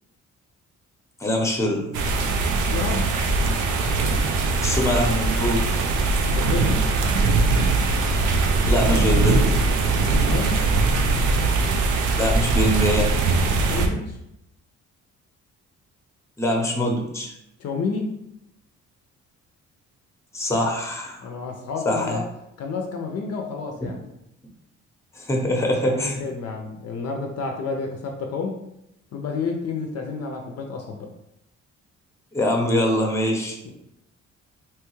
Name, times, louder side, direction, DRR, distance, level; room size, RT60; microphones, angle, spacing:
voice 1, 1.2-1.9 4.6-5.7 8.6-9.5 12.1-13.2 16.4-17.3 20.3-21.3 21.8-22.2 25.1-26.2 32.3-33.7, equal, 10° left, 0 dB, 0.7 m, -23 dB
sound 1, 1.9-13.9, right 3 dB, 85° right, 0.5 m, -21 dB
voice 2, 2.6-3.1 6.1-6.9 10.0-10.7 13.6-14.2 17.6-18.1 21.2-22.2 22.6-24.0 25.8-28.6 29.1-31.1 33.6-33.7, left 4 dB, 55° left, 2 dB, 0.5 m, -30 dB
3.0 x 2.2 x 3.0 m, 0.83 s
cardioid pair, 90°, 30 cm